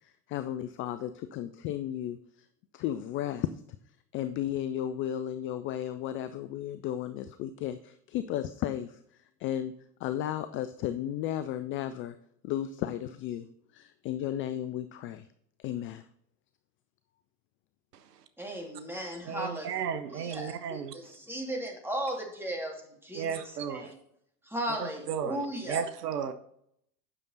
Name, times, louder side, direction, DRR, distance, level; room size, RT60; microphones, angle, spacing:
voice 1, 0.0-2.2 2.7-3.5 4.1-9.0 9.4-9.7 10.0-12.1 12.4-13.5 13.7-15.3 15.6-16.0, left 11 dB, 30° left, 11 dB, 0.4 m, -34 dB
voice 2, 18.4-19.7 20.1-22.7 23.0-23.9 24.5-25.8, right 1 dB, 5° right, 1 dB, 2.5 m, -36 dB
voice 3, 19.2-21.0 23.1-23.9 24.8-26.3, right 7 dB, 75° right, 11 dB, 0.9 m, -34 dB
9.1 x 6.7 x 4.0 m, 0.70 s
hypercardioid pair, 85°, 47 cm